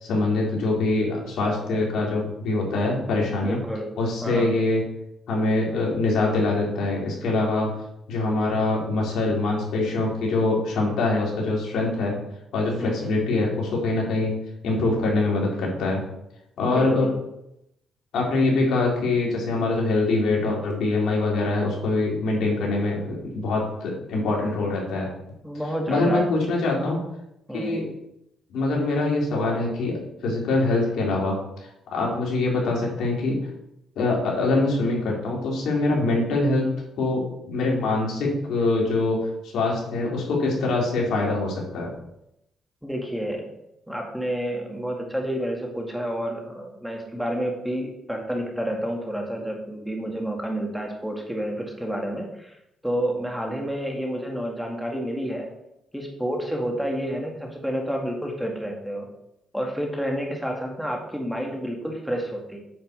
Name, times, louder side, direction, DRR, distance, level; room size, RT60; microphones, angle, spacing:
voice 1, 0.0-3.6 4.0-4.8 5.3-7.7 8.1-12.1 12.5-14.3 14.6-16.0 16.6-17.1 18.1-25.1 25.9-27.0 27.5-27.9 28.5-31.4 31.9-33.4 34.0-36.7 37.0-39.2 39.4-41.9, left 2 dB, 75° left, -2 dB, 3.7 m, -24 dB
voice 2, 3.4-3.9 4.2-4.6 12.8-13.1 16.6-17.2 25.4-26.3 27.5-27.8 42.8-43.5 43.9-52.6 52.8-55.5 55.9-59.1 59.5-62.6, equal, ahead, 1 dB, 2.1 m, -29 dB
8.9 x 5.5 x 6.8 m, 0.82 s
cardioid pair, 90°, 0 cm